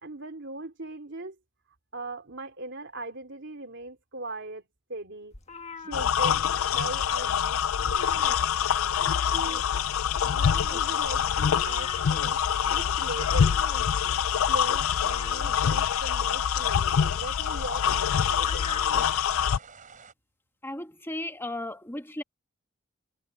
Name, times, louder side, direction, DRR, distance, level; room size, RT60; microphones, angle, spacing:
voice 1, 0.0-1.3 1.9-4.6 4.9-5.3 5.8-8.3 9.3-9.7 10.2-13.6 14.5-18.6, right 2 dB, 60° right, 3.4 m, -39 dB
sound 1, 5.3-6.8 7.1-7.3 7.6-8.7 9.0-19.1, left 4 dB, 35° left, 1.6 m, -44 dB
sound 2, 5.9-19.6, left 8 dB, 85° left, 0.4 m, -25 dB
sound 3, 10.8-20.1, right 5 dB, 40° right, 5.4 m, -50 dB
voice 2, 20.6-22.2, left 1 dB, 10° left, 1.4 m, -35 dB
head